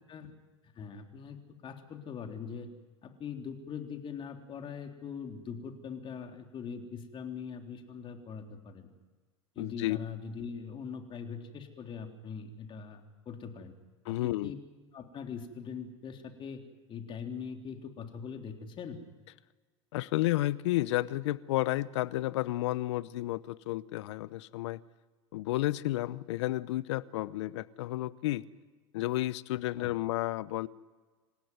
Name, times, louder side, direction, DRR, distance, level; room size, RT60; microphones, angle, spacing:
voice 1, 0.8-2.7 3.0-8.9 9.6-13.7 14.1-14.6 14.9-16.6 16.9-19.0 29.8-30.0, left 6 dB, 35° left, 4 dB, 3.7 m, -42 dB
voice 2, 9.6-10.0 14.1-14.5 19.9-24.8 25.3-28.4 28.9-30.7, left 17 dB, 65° left, 19 dB, 0.9 m, -31 dB
27.0 x 16.5 x 9.5 m, 1.3 s
hypercardioid pair, 90°, 16 cm